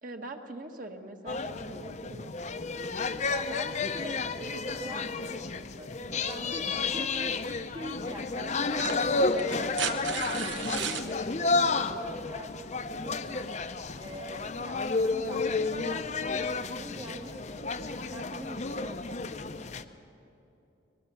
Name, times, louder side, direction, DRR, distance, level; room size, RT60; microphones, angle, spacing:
voice 1, 0.0-2.5, right 2 dB, 45° right, 4 dB, 1.5 m, -43 dB
sound 1, 1.3-19.8, left 3 dB, 35° left, 0.7 m, -31 dB
voice 2, 3.3-7.4 7.6-13.5 14.0-17.7 18.1-19.5, right 1 dB, 20° right, 2 dB, 1.0 m, -44 dB
sound 2, 7.5-7.6 8.6-11.1 12.6-12.7, right 7 dB, 65° right, 1.2 m, -35 dB
23.0 x 21.0 x 7.0 m, 2.8 s
head